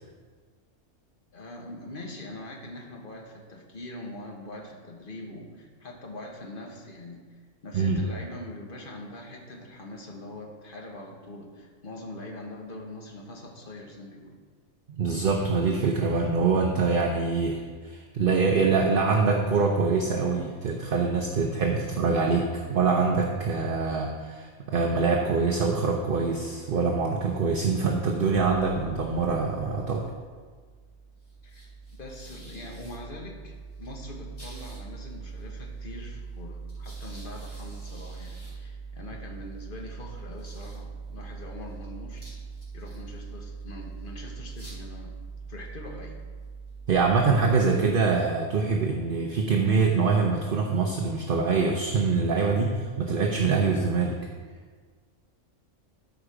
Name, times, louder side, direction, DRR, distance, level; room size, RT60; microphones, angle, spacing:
voice 1, 1.3-7.2 7.6-14.3 31.4-31.7 32.0-42.4 42.7-45.2 45.5-46.2, left 1 dB, 40° left, 0 dB, 1.5 m, -43 dB
voice 2, 14.9-30.1 46.9-54.2, right 4 dB, 50° right, 2 dB, 0.8 m, -24 dB
sound 1, 28.3-48.2, right 4 dB, 75° left, 3.6 m, -42 dB
13.0 x 5.0 x 4.9 m, 1.5 s
omnidirectional pair, 1.4 m